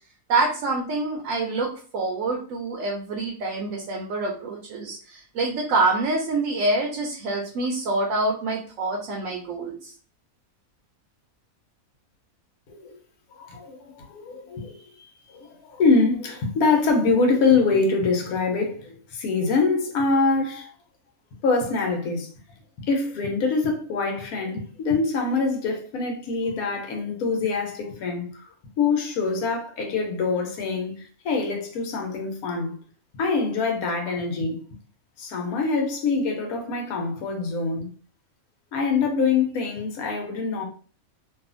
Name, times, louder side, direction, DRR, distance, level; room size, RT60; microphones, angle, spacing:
voice 1, 0.3-1.7 1.9-9.9, right 2 dB, 70° right, 1.0 m, -26 dB
voice 2, 13.3-20.7 21.4-22.3 22.9-28.5 28.8-32.7 33.1-34.6 35.2-37.9 38.7-40.6, left 4 dB, 90° left, 1.2 m, -24 dB
2.7 x 2.4 x 2.4 m
omnidirectional pair, 1.5 m